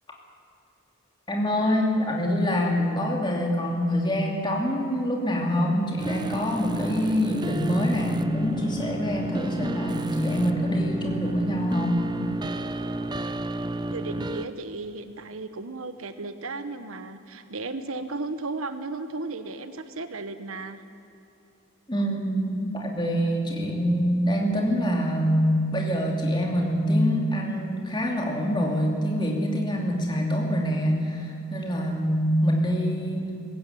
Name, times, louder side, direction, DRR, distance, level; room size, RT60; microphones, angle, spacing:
voice 1, 1.3-12.1 21.9-33.3, equal, 20° left, 0 dB, 2.7 m, -25 dB
sound 1, 6.0-14.5, right 1 dB, 20° right, 0.6 m, -32 dB
voice 2, 13.9-20.8, right 3 dB, 75° right, 10 dB, 1.1 m, -35 dB
20.0 x 16.5 x 9.1 m, 2.7 s
head